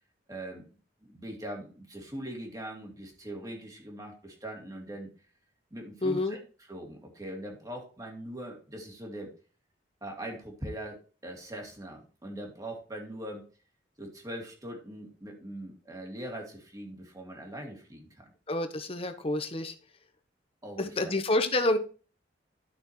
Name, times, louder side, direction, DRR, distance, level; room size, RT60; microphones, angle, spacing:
voice 1, 0.3-0.7 1.0-5.1 5.7-6.4 6.7-9.3 10.0-13.4 14.0-18.3 20.6-21.1, right 1 dB, 20° right, 1 dB, 2.3 m, -41 dB
voice 2, 6.0-6.4 18.5-19.7 20.8-21.8, left 2 dB, 30° left, 8 dB, 1.0 m, -28 dB
12.0 x 6.2 x 3.1 m, 0.36 s
head